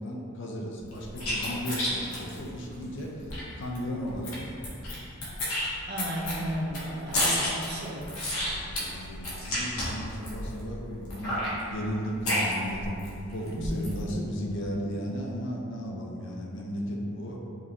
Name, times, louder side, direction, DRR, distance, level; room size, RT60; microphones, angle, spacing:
voice 1, 0.0-3.2 3.6-4.8 8.3-13.0 13.3-17.4, equal, 55° left, -1 dB, 0.5 m, -35 dB
sound 1, 0.9-3.4 3.7-3.8 4.1-5.0 5.2-10.6 11.1-13.1 13.4-14.0, left 1 dB, 75° left, 1.1 m, -30 dB
voice 2, 5.9-8.1 13.6-14.1, equal, 45° right, -3 dB, 0.6 m, -34 dB
5.1 x 2.6 x 2.9 m, 2.7 s
head